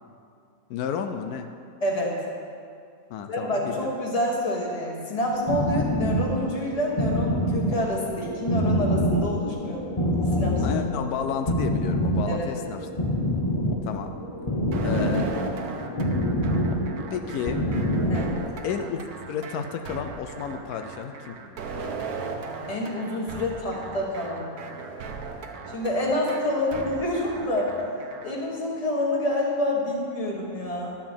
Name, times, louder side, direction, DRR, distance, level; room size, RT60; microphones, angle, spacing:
voice 1, 0.7-1.5 3.1-3.9 10.6-13.2 13.8-14.1 14.8-15.3 17.1-17.6 18.6-21.6, left 7 dB, 85° left, 6 dB, 1.1 m, -32 dB
voice 2, 1.8-2.2 3.3-9.9 10.4-10.6 12.3-12.7 18.1-18.3 22.7-24.4 25.7-27.7 28.2-30.9, left 1 dB, 25° left, -2 dB, 1.4 m, -27 dB
sound 1, 5.3-18.5, equal, 45° left, 0.4 m, -26 dB
sound 2, 14.7-28.3, right 4 dB, 85° right, 1.3 m, -37 dB
11.5 x 4.4 x 7.3 m, 2.4 s
omnidirectional pair, 1.6 m